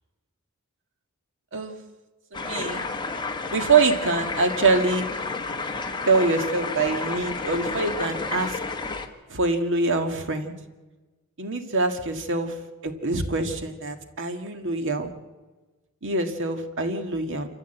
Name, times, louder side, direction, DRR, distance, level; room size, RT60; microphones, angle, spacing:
sound 1, 2.3-9.1, left 3 dB, 20° left, 1.6 m, -31 dB
voice 1, 2.3-2.8 3.5-5.0 6.1-8.6 9.3-10.5 11.4-12.6 12.8-15.1 16.0-17.5, right 3 dB, 60° right, 6 dB, 1.9 m, -24 dB
27.5 x 14.0 x 8.0 m, 1.2 s
head